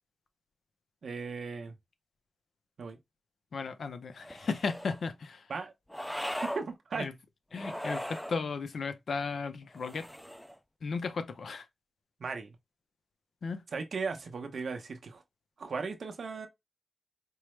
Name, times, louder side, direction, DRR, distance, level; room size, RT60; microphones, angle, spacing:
voice 1, 1.0-1.8 2.8-3.0 5.5-5.7 6.4-7.1 12.2-12.6 13.7-15.2 15.6-16.5, right 4 dB, 85° right, 0.7 m, -37 dB
voice 2, 3.5-5.4 7.0-7.1 7.5-10.1 10.8-11.7 13.4-13.6, left 4 dB, 90° left, 0.5 m, -35 dB
sound 1, 4.2-5.0 5.9-6.6 7.5-8.4 9.7-10.6, equal, 5° left, 0.4 m, -38 dB
4.6 x 2.0 x 3.2 m
wide cardioid pair, 70°, 0 cm